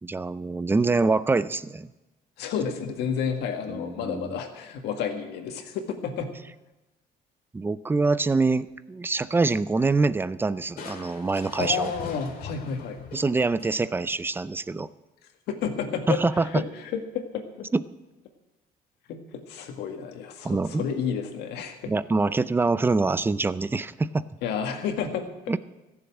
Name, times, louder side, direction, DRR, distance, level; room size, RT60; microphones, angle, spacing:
voice 1, 0.0-1.9 3.7-4.4 7.5-11.9 13.1-14.9 16.1-16.7 17.7-17.8 20.4-20.9 21.9-24.3 25.5-25.6, right 3 dB, 15° right, 16 dB, 0.5 m, -25 dB
voice 2, 2.4-6.3 11.6-13.0 15.5-17.7 19.1-21.9 24.4-25.5, left 7 dB, 85° left, 4 dB, 1.9 m, -31 dB
Crushing, 10.8-14.1, left 6 dB, 60° left, 2.1 m, -42 dB
15.0 x 7.2 x 8.8 m, 1.0 s
cardioid pair, 110°, 17 cm